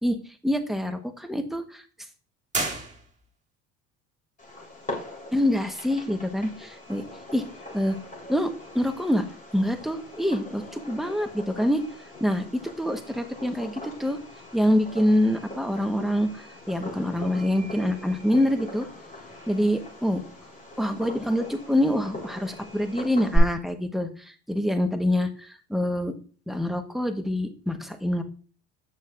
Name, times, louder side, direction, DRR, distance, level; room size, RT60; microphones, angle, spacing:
voice 1, 0.4-1.8 5.3-7.0 7.3-7.4 7.7-8.0 8.3-9.3 9.5-11.8 12.2-14.2 14.5-18.9 19.5-20.2 20.8-26.2 26.5-28.2, left 1 dB, ahead, 6 dB, 1.1 m, -26 dB
sound 1, 2.5-3.5, right 3 dB, 20° right, 1.9 m, -31 dB
Fireworks, 4.4-23.4, equal, 20° left, 3.8 m, -38 dB
7.9 x 6.4 x 2.5 m, 0.38 s
supercardioid pair, 80°, 38 cm